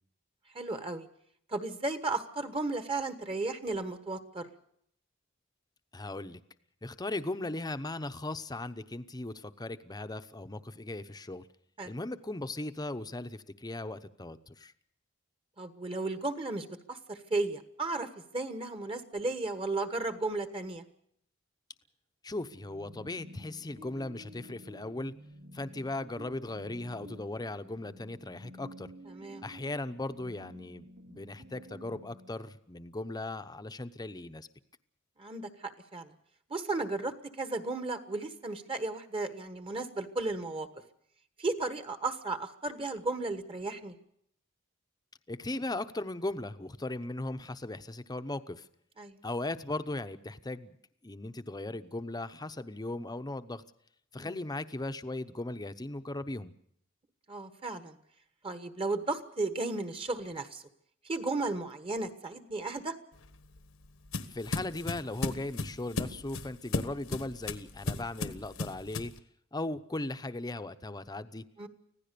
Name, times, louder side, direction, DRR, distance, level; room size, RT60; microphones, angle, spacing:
voice 1, 0.5-1.1 1.5-4.5 11.8-11.9 15.6-20.8 29.1-29.4 35.2-36.1 36.5-40.7 41.4-43.9 49.0-49.2 54.1-54.4 57.3-58.0 58.4-60.6 61.1-63.0 71.6-71.7, right 3 dB, 25° right, 9 dB, 1.4 m, -34 dB
voice 2, 5.9-6.4 6.8-11.5 11.8-14.7 22.2-25.1 25.5-28.9 29.4-34.5 45.3-48.7 49.2-50.8 51.0-53.6 54.1-56.5 64.3-69.1 69.5-71.4, left 2 dB, 20° left, 11 dB, 0.8 m, -38 dB
sound 1, 22.4-32.3, equal, 70° right, 2.8 m, -51 dB
sound 2, 63.2-69.2, left 2 dB, 75° left, 1.3 m, -36 dB
25.0 x 16.5 x 6.8 m, 0.70 s
head